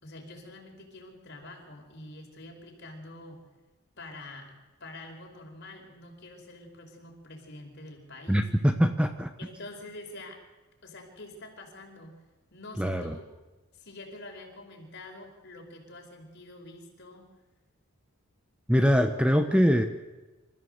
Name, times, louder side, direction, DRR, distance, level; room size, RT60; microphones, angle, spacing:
voice 1, 0.0-3.4 4.0-4.5 4.8-8.5 9.4-10.4 10.8-12.2 12.5-13.3 13.7-17.3, left 2 dB, 50° left, 2 dB, 5.1 m, -46 dB
voice 2, 8.3-9.3 12.8-13.1 18.7-19.8, equal, 5° right, 8 dB, 0.9 m, -23 dB
27.0 x 14.5 x 8.0 m, 1.2 s
head